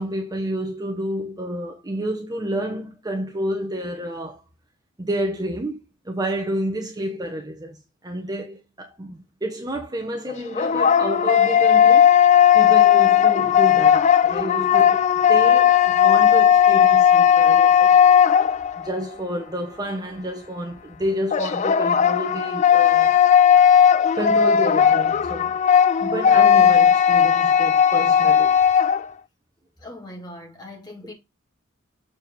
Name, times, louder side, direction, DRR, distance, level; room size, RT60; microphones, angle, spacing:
voice 1, 0.0-4.4 5.0-5.8 6.0-7.8 8.0-12.1 12.5-18.0 18.8-23.2 24.1-25.6 26.0-28.6, right 1 dB, 20° right, 1.0 m, -29 dB
sound 1, 10.3-19.0 21.3-29.1, left 8 dB, 35° left, 0.3 m, -16 dB
voice 2, 29.8-31.1, left 1 dB, 20° left, 2.3 m, -40 dB
7.1 x 4.4 x 4.5 m
head